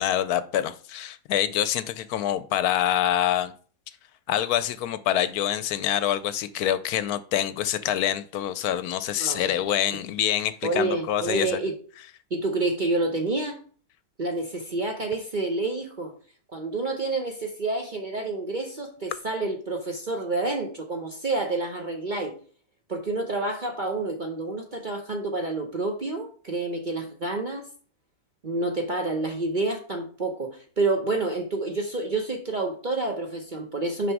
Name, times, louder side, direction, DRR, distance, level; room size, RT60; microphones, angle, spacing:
voice 1, 0.0-3.5 4.3-11.6, left 11 dB, 75° left, 14 dB, 1.0 m, -26 dB
voice 2, 9.2-9.5 10.6-11.7 12.3-13.6 14.2-16.1 16.5-22.3 22.9-27.6 28.4-34.1, right 2 dB, 40° right, 3 dB, 0.7 m, -28 dB
6.0 x 5.1 x 4.7 m, 0.42 s
omnidirectional pair, 1.7 m